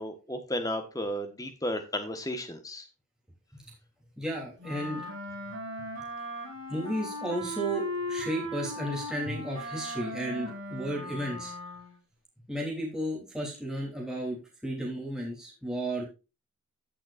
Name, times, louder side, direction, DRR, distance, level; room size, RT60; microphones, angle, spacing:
voice 1, 0.0-2.8, left 1 dB, 15° left, 7 dB, 1.3 m, -33 dB
voice 2, 4.2-5.0 6.7-11.5 12.5-14.4 14.6-16.0, right 1 dB, 5° right, -3 dB, 3.2 m, -33 dB
Wind instrument woodwind instrument, 4.6-12.0, equal, 60° right, 5.3 m, -38 dB
16.0 x 6.4 x 2.5 m, 0.29 s
head